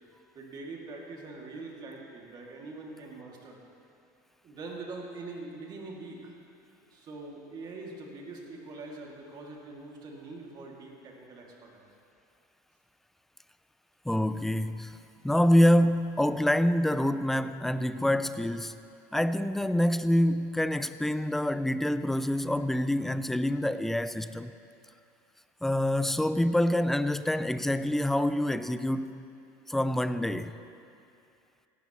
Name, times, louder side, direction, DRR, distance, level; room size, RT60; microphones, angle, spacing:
voice 1, 0.3-3.6 4.4-6.3 6.9-11.9, right 3 dB, 40° right, 2.4 m, -43 dB
voice 2, 14.1-15.0 15.2-18.8 19.1-24.5 25.6-29.2 29.7-30.6, left 1 dB, 5° left, 0.4 m, -26 dB
17.0 x 11.5 x 3.1 m
supercardioid pair, 105°, 11 cm